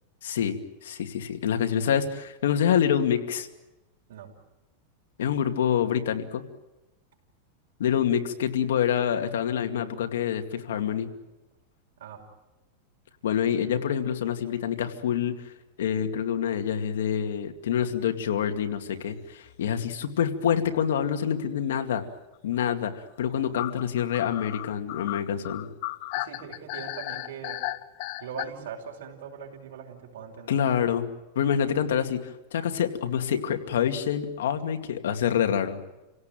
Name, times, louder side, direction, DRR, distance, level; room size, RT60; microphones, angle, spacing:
voice 1, 0.2-3.5 5.2-6.4 7.8-11.1 13.2-15.5 15.8-22.0 22.4-25.7 30.5-31.1 31.4-35.8, left 8 dB, 85° left, 6 dB, 2.3 m, -26 dB
sound 1, 19.3-19.5 19.8-19.9 20.2-20.3 21.2-21.5 23.6-28.4, left 17 dB, 50° left, 0.8 m, -35 dB
voice 2, 26.1-27.6 28.2-30.6, right 7 dB, 80° right, 0 dB, 5.8 m, -40 dB
28.5 x 17.5 x 9.1 m, 1.0 s
supercardioid pair, 150°, 0 cm